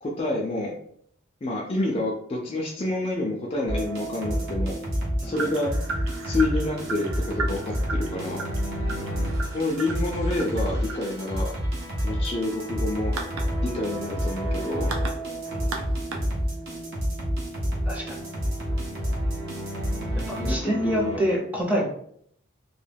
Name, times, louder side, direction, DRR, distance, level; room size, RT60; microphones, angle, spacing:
voice 1, 0.0-0.8 1.4-4.8 5.2-5.7 6.2-8.4 9.5-11.5 12.0-13.1 13.6-15.0 20.4-21.2, left 2 dB, 30° left, -1 dB, 0.3 m, -28 dB
sound 1, 3.7-21.2, equal, 50° right, 0.9 m, -29 dB
voice 2, 5.2-5.5 8.9-9.3 15.5-15.6 17.9-18.2 20.3-21.9, equal, 10° right, -3 dB, 0.6 m, -27 dB
sound 2, 5.3-16.8, right 3 dB, 80° right, 0.5 m, -38 dB
2.2 x 2.2 x 3.3 m, 0.65 s
head